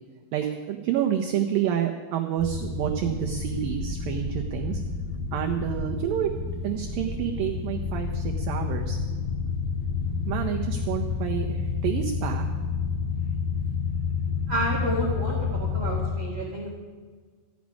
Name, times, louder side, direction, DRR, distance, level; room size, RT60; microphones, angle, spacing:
voice 1, 0.3-4.8 5.3-6.3 6.6-9.0 10.3-12.5, right 10 dB, 85° right, 3 dB, 2.0 m, -29 dB
sound 1, 2.4-16.1, left 5 dB, 85° left, 5.1 m, -29 dB
voice 2, 14.5-16.7, right 1 dB, 50° right, -2 dB, 1.4 m, -30 dB
14.5 x 6.2 x 9.6 m, 1.5 s
omnidirectional pair, 4.9 m